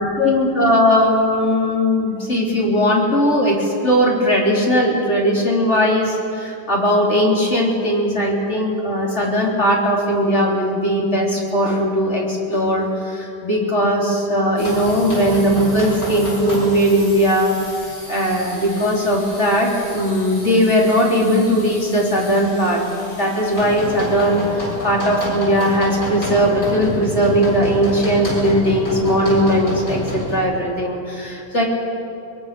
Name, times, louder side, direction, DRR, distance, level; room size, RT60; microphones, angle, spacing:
voice 1, 0.0-17.6 18.1-22.8 23.1-31.6, equal, 40° left, -3 dB, 4.3 m, -18 dB
sound 1, 14.6-30.4, equal, 90° left, 8.4 m, -29 dB
23.0 x 22.0 x 7.0 m, 2.5 s
omnidirectional pair, 1.8 m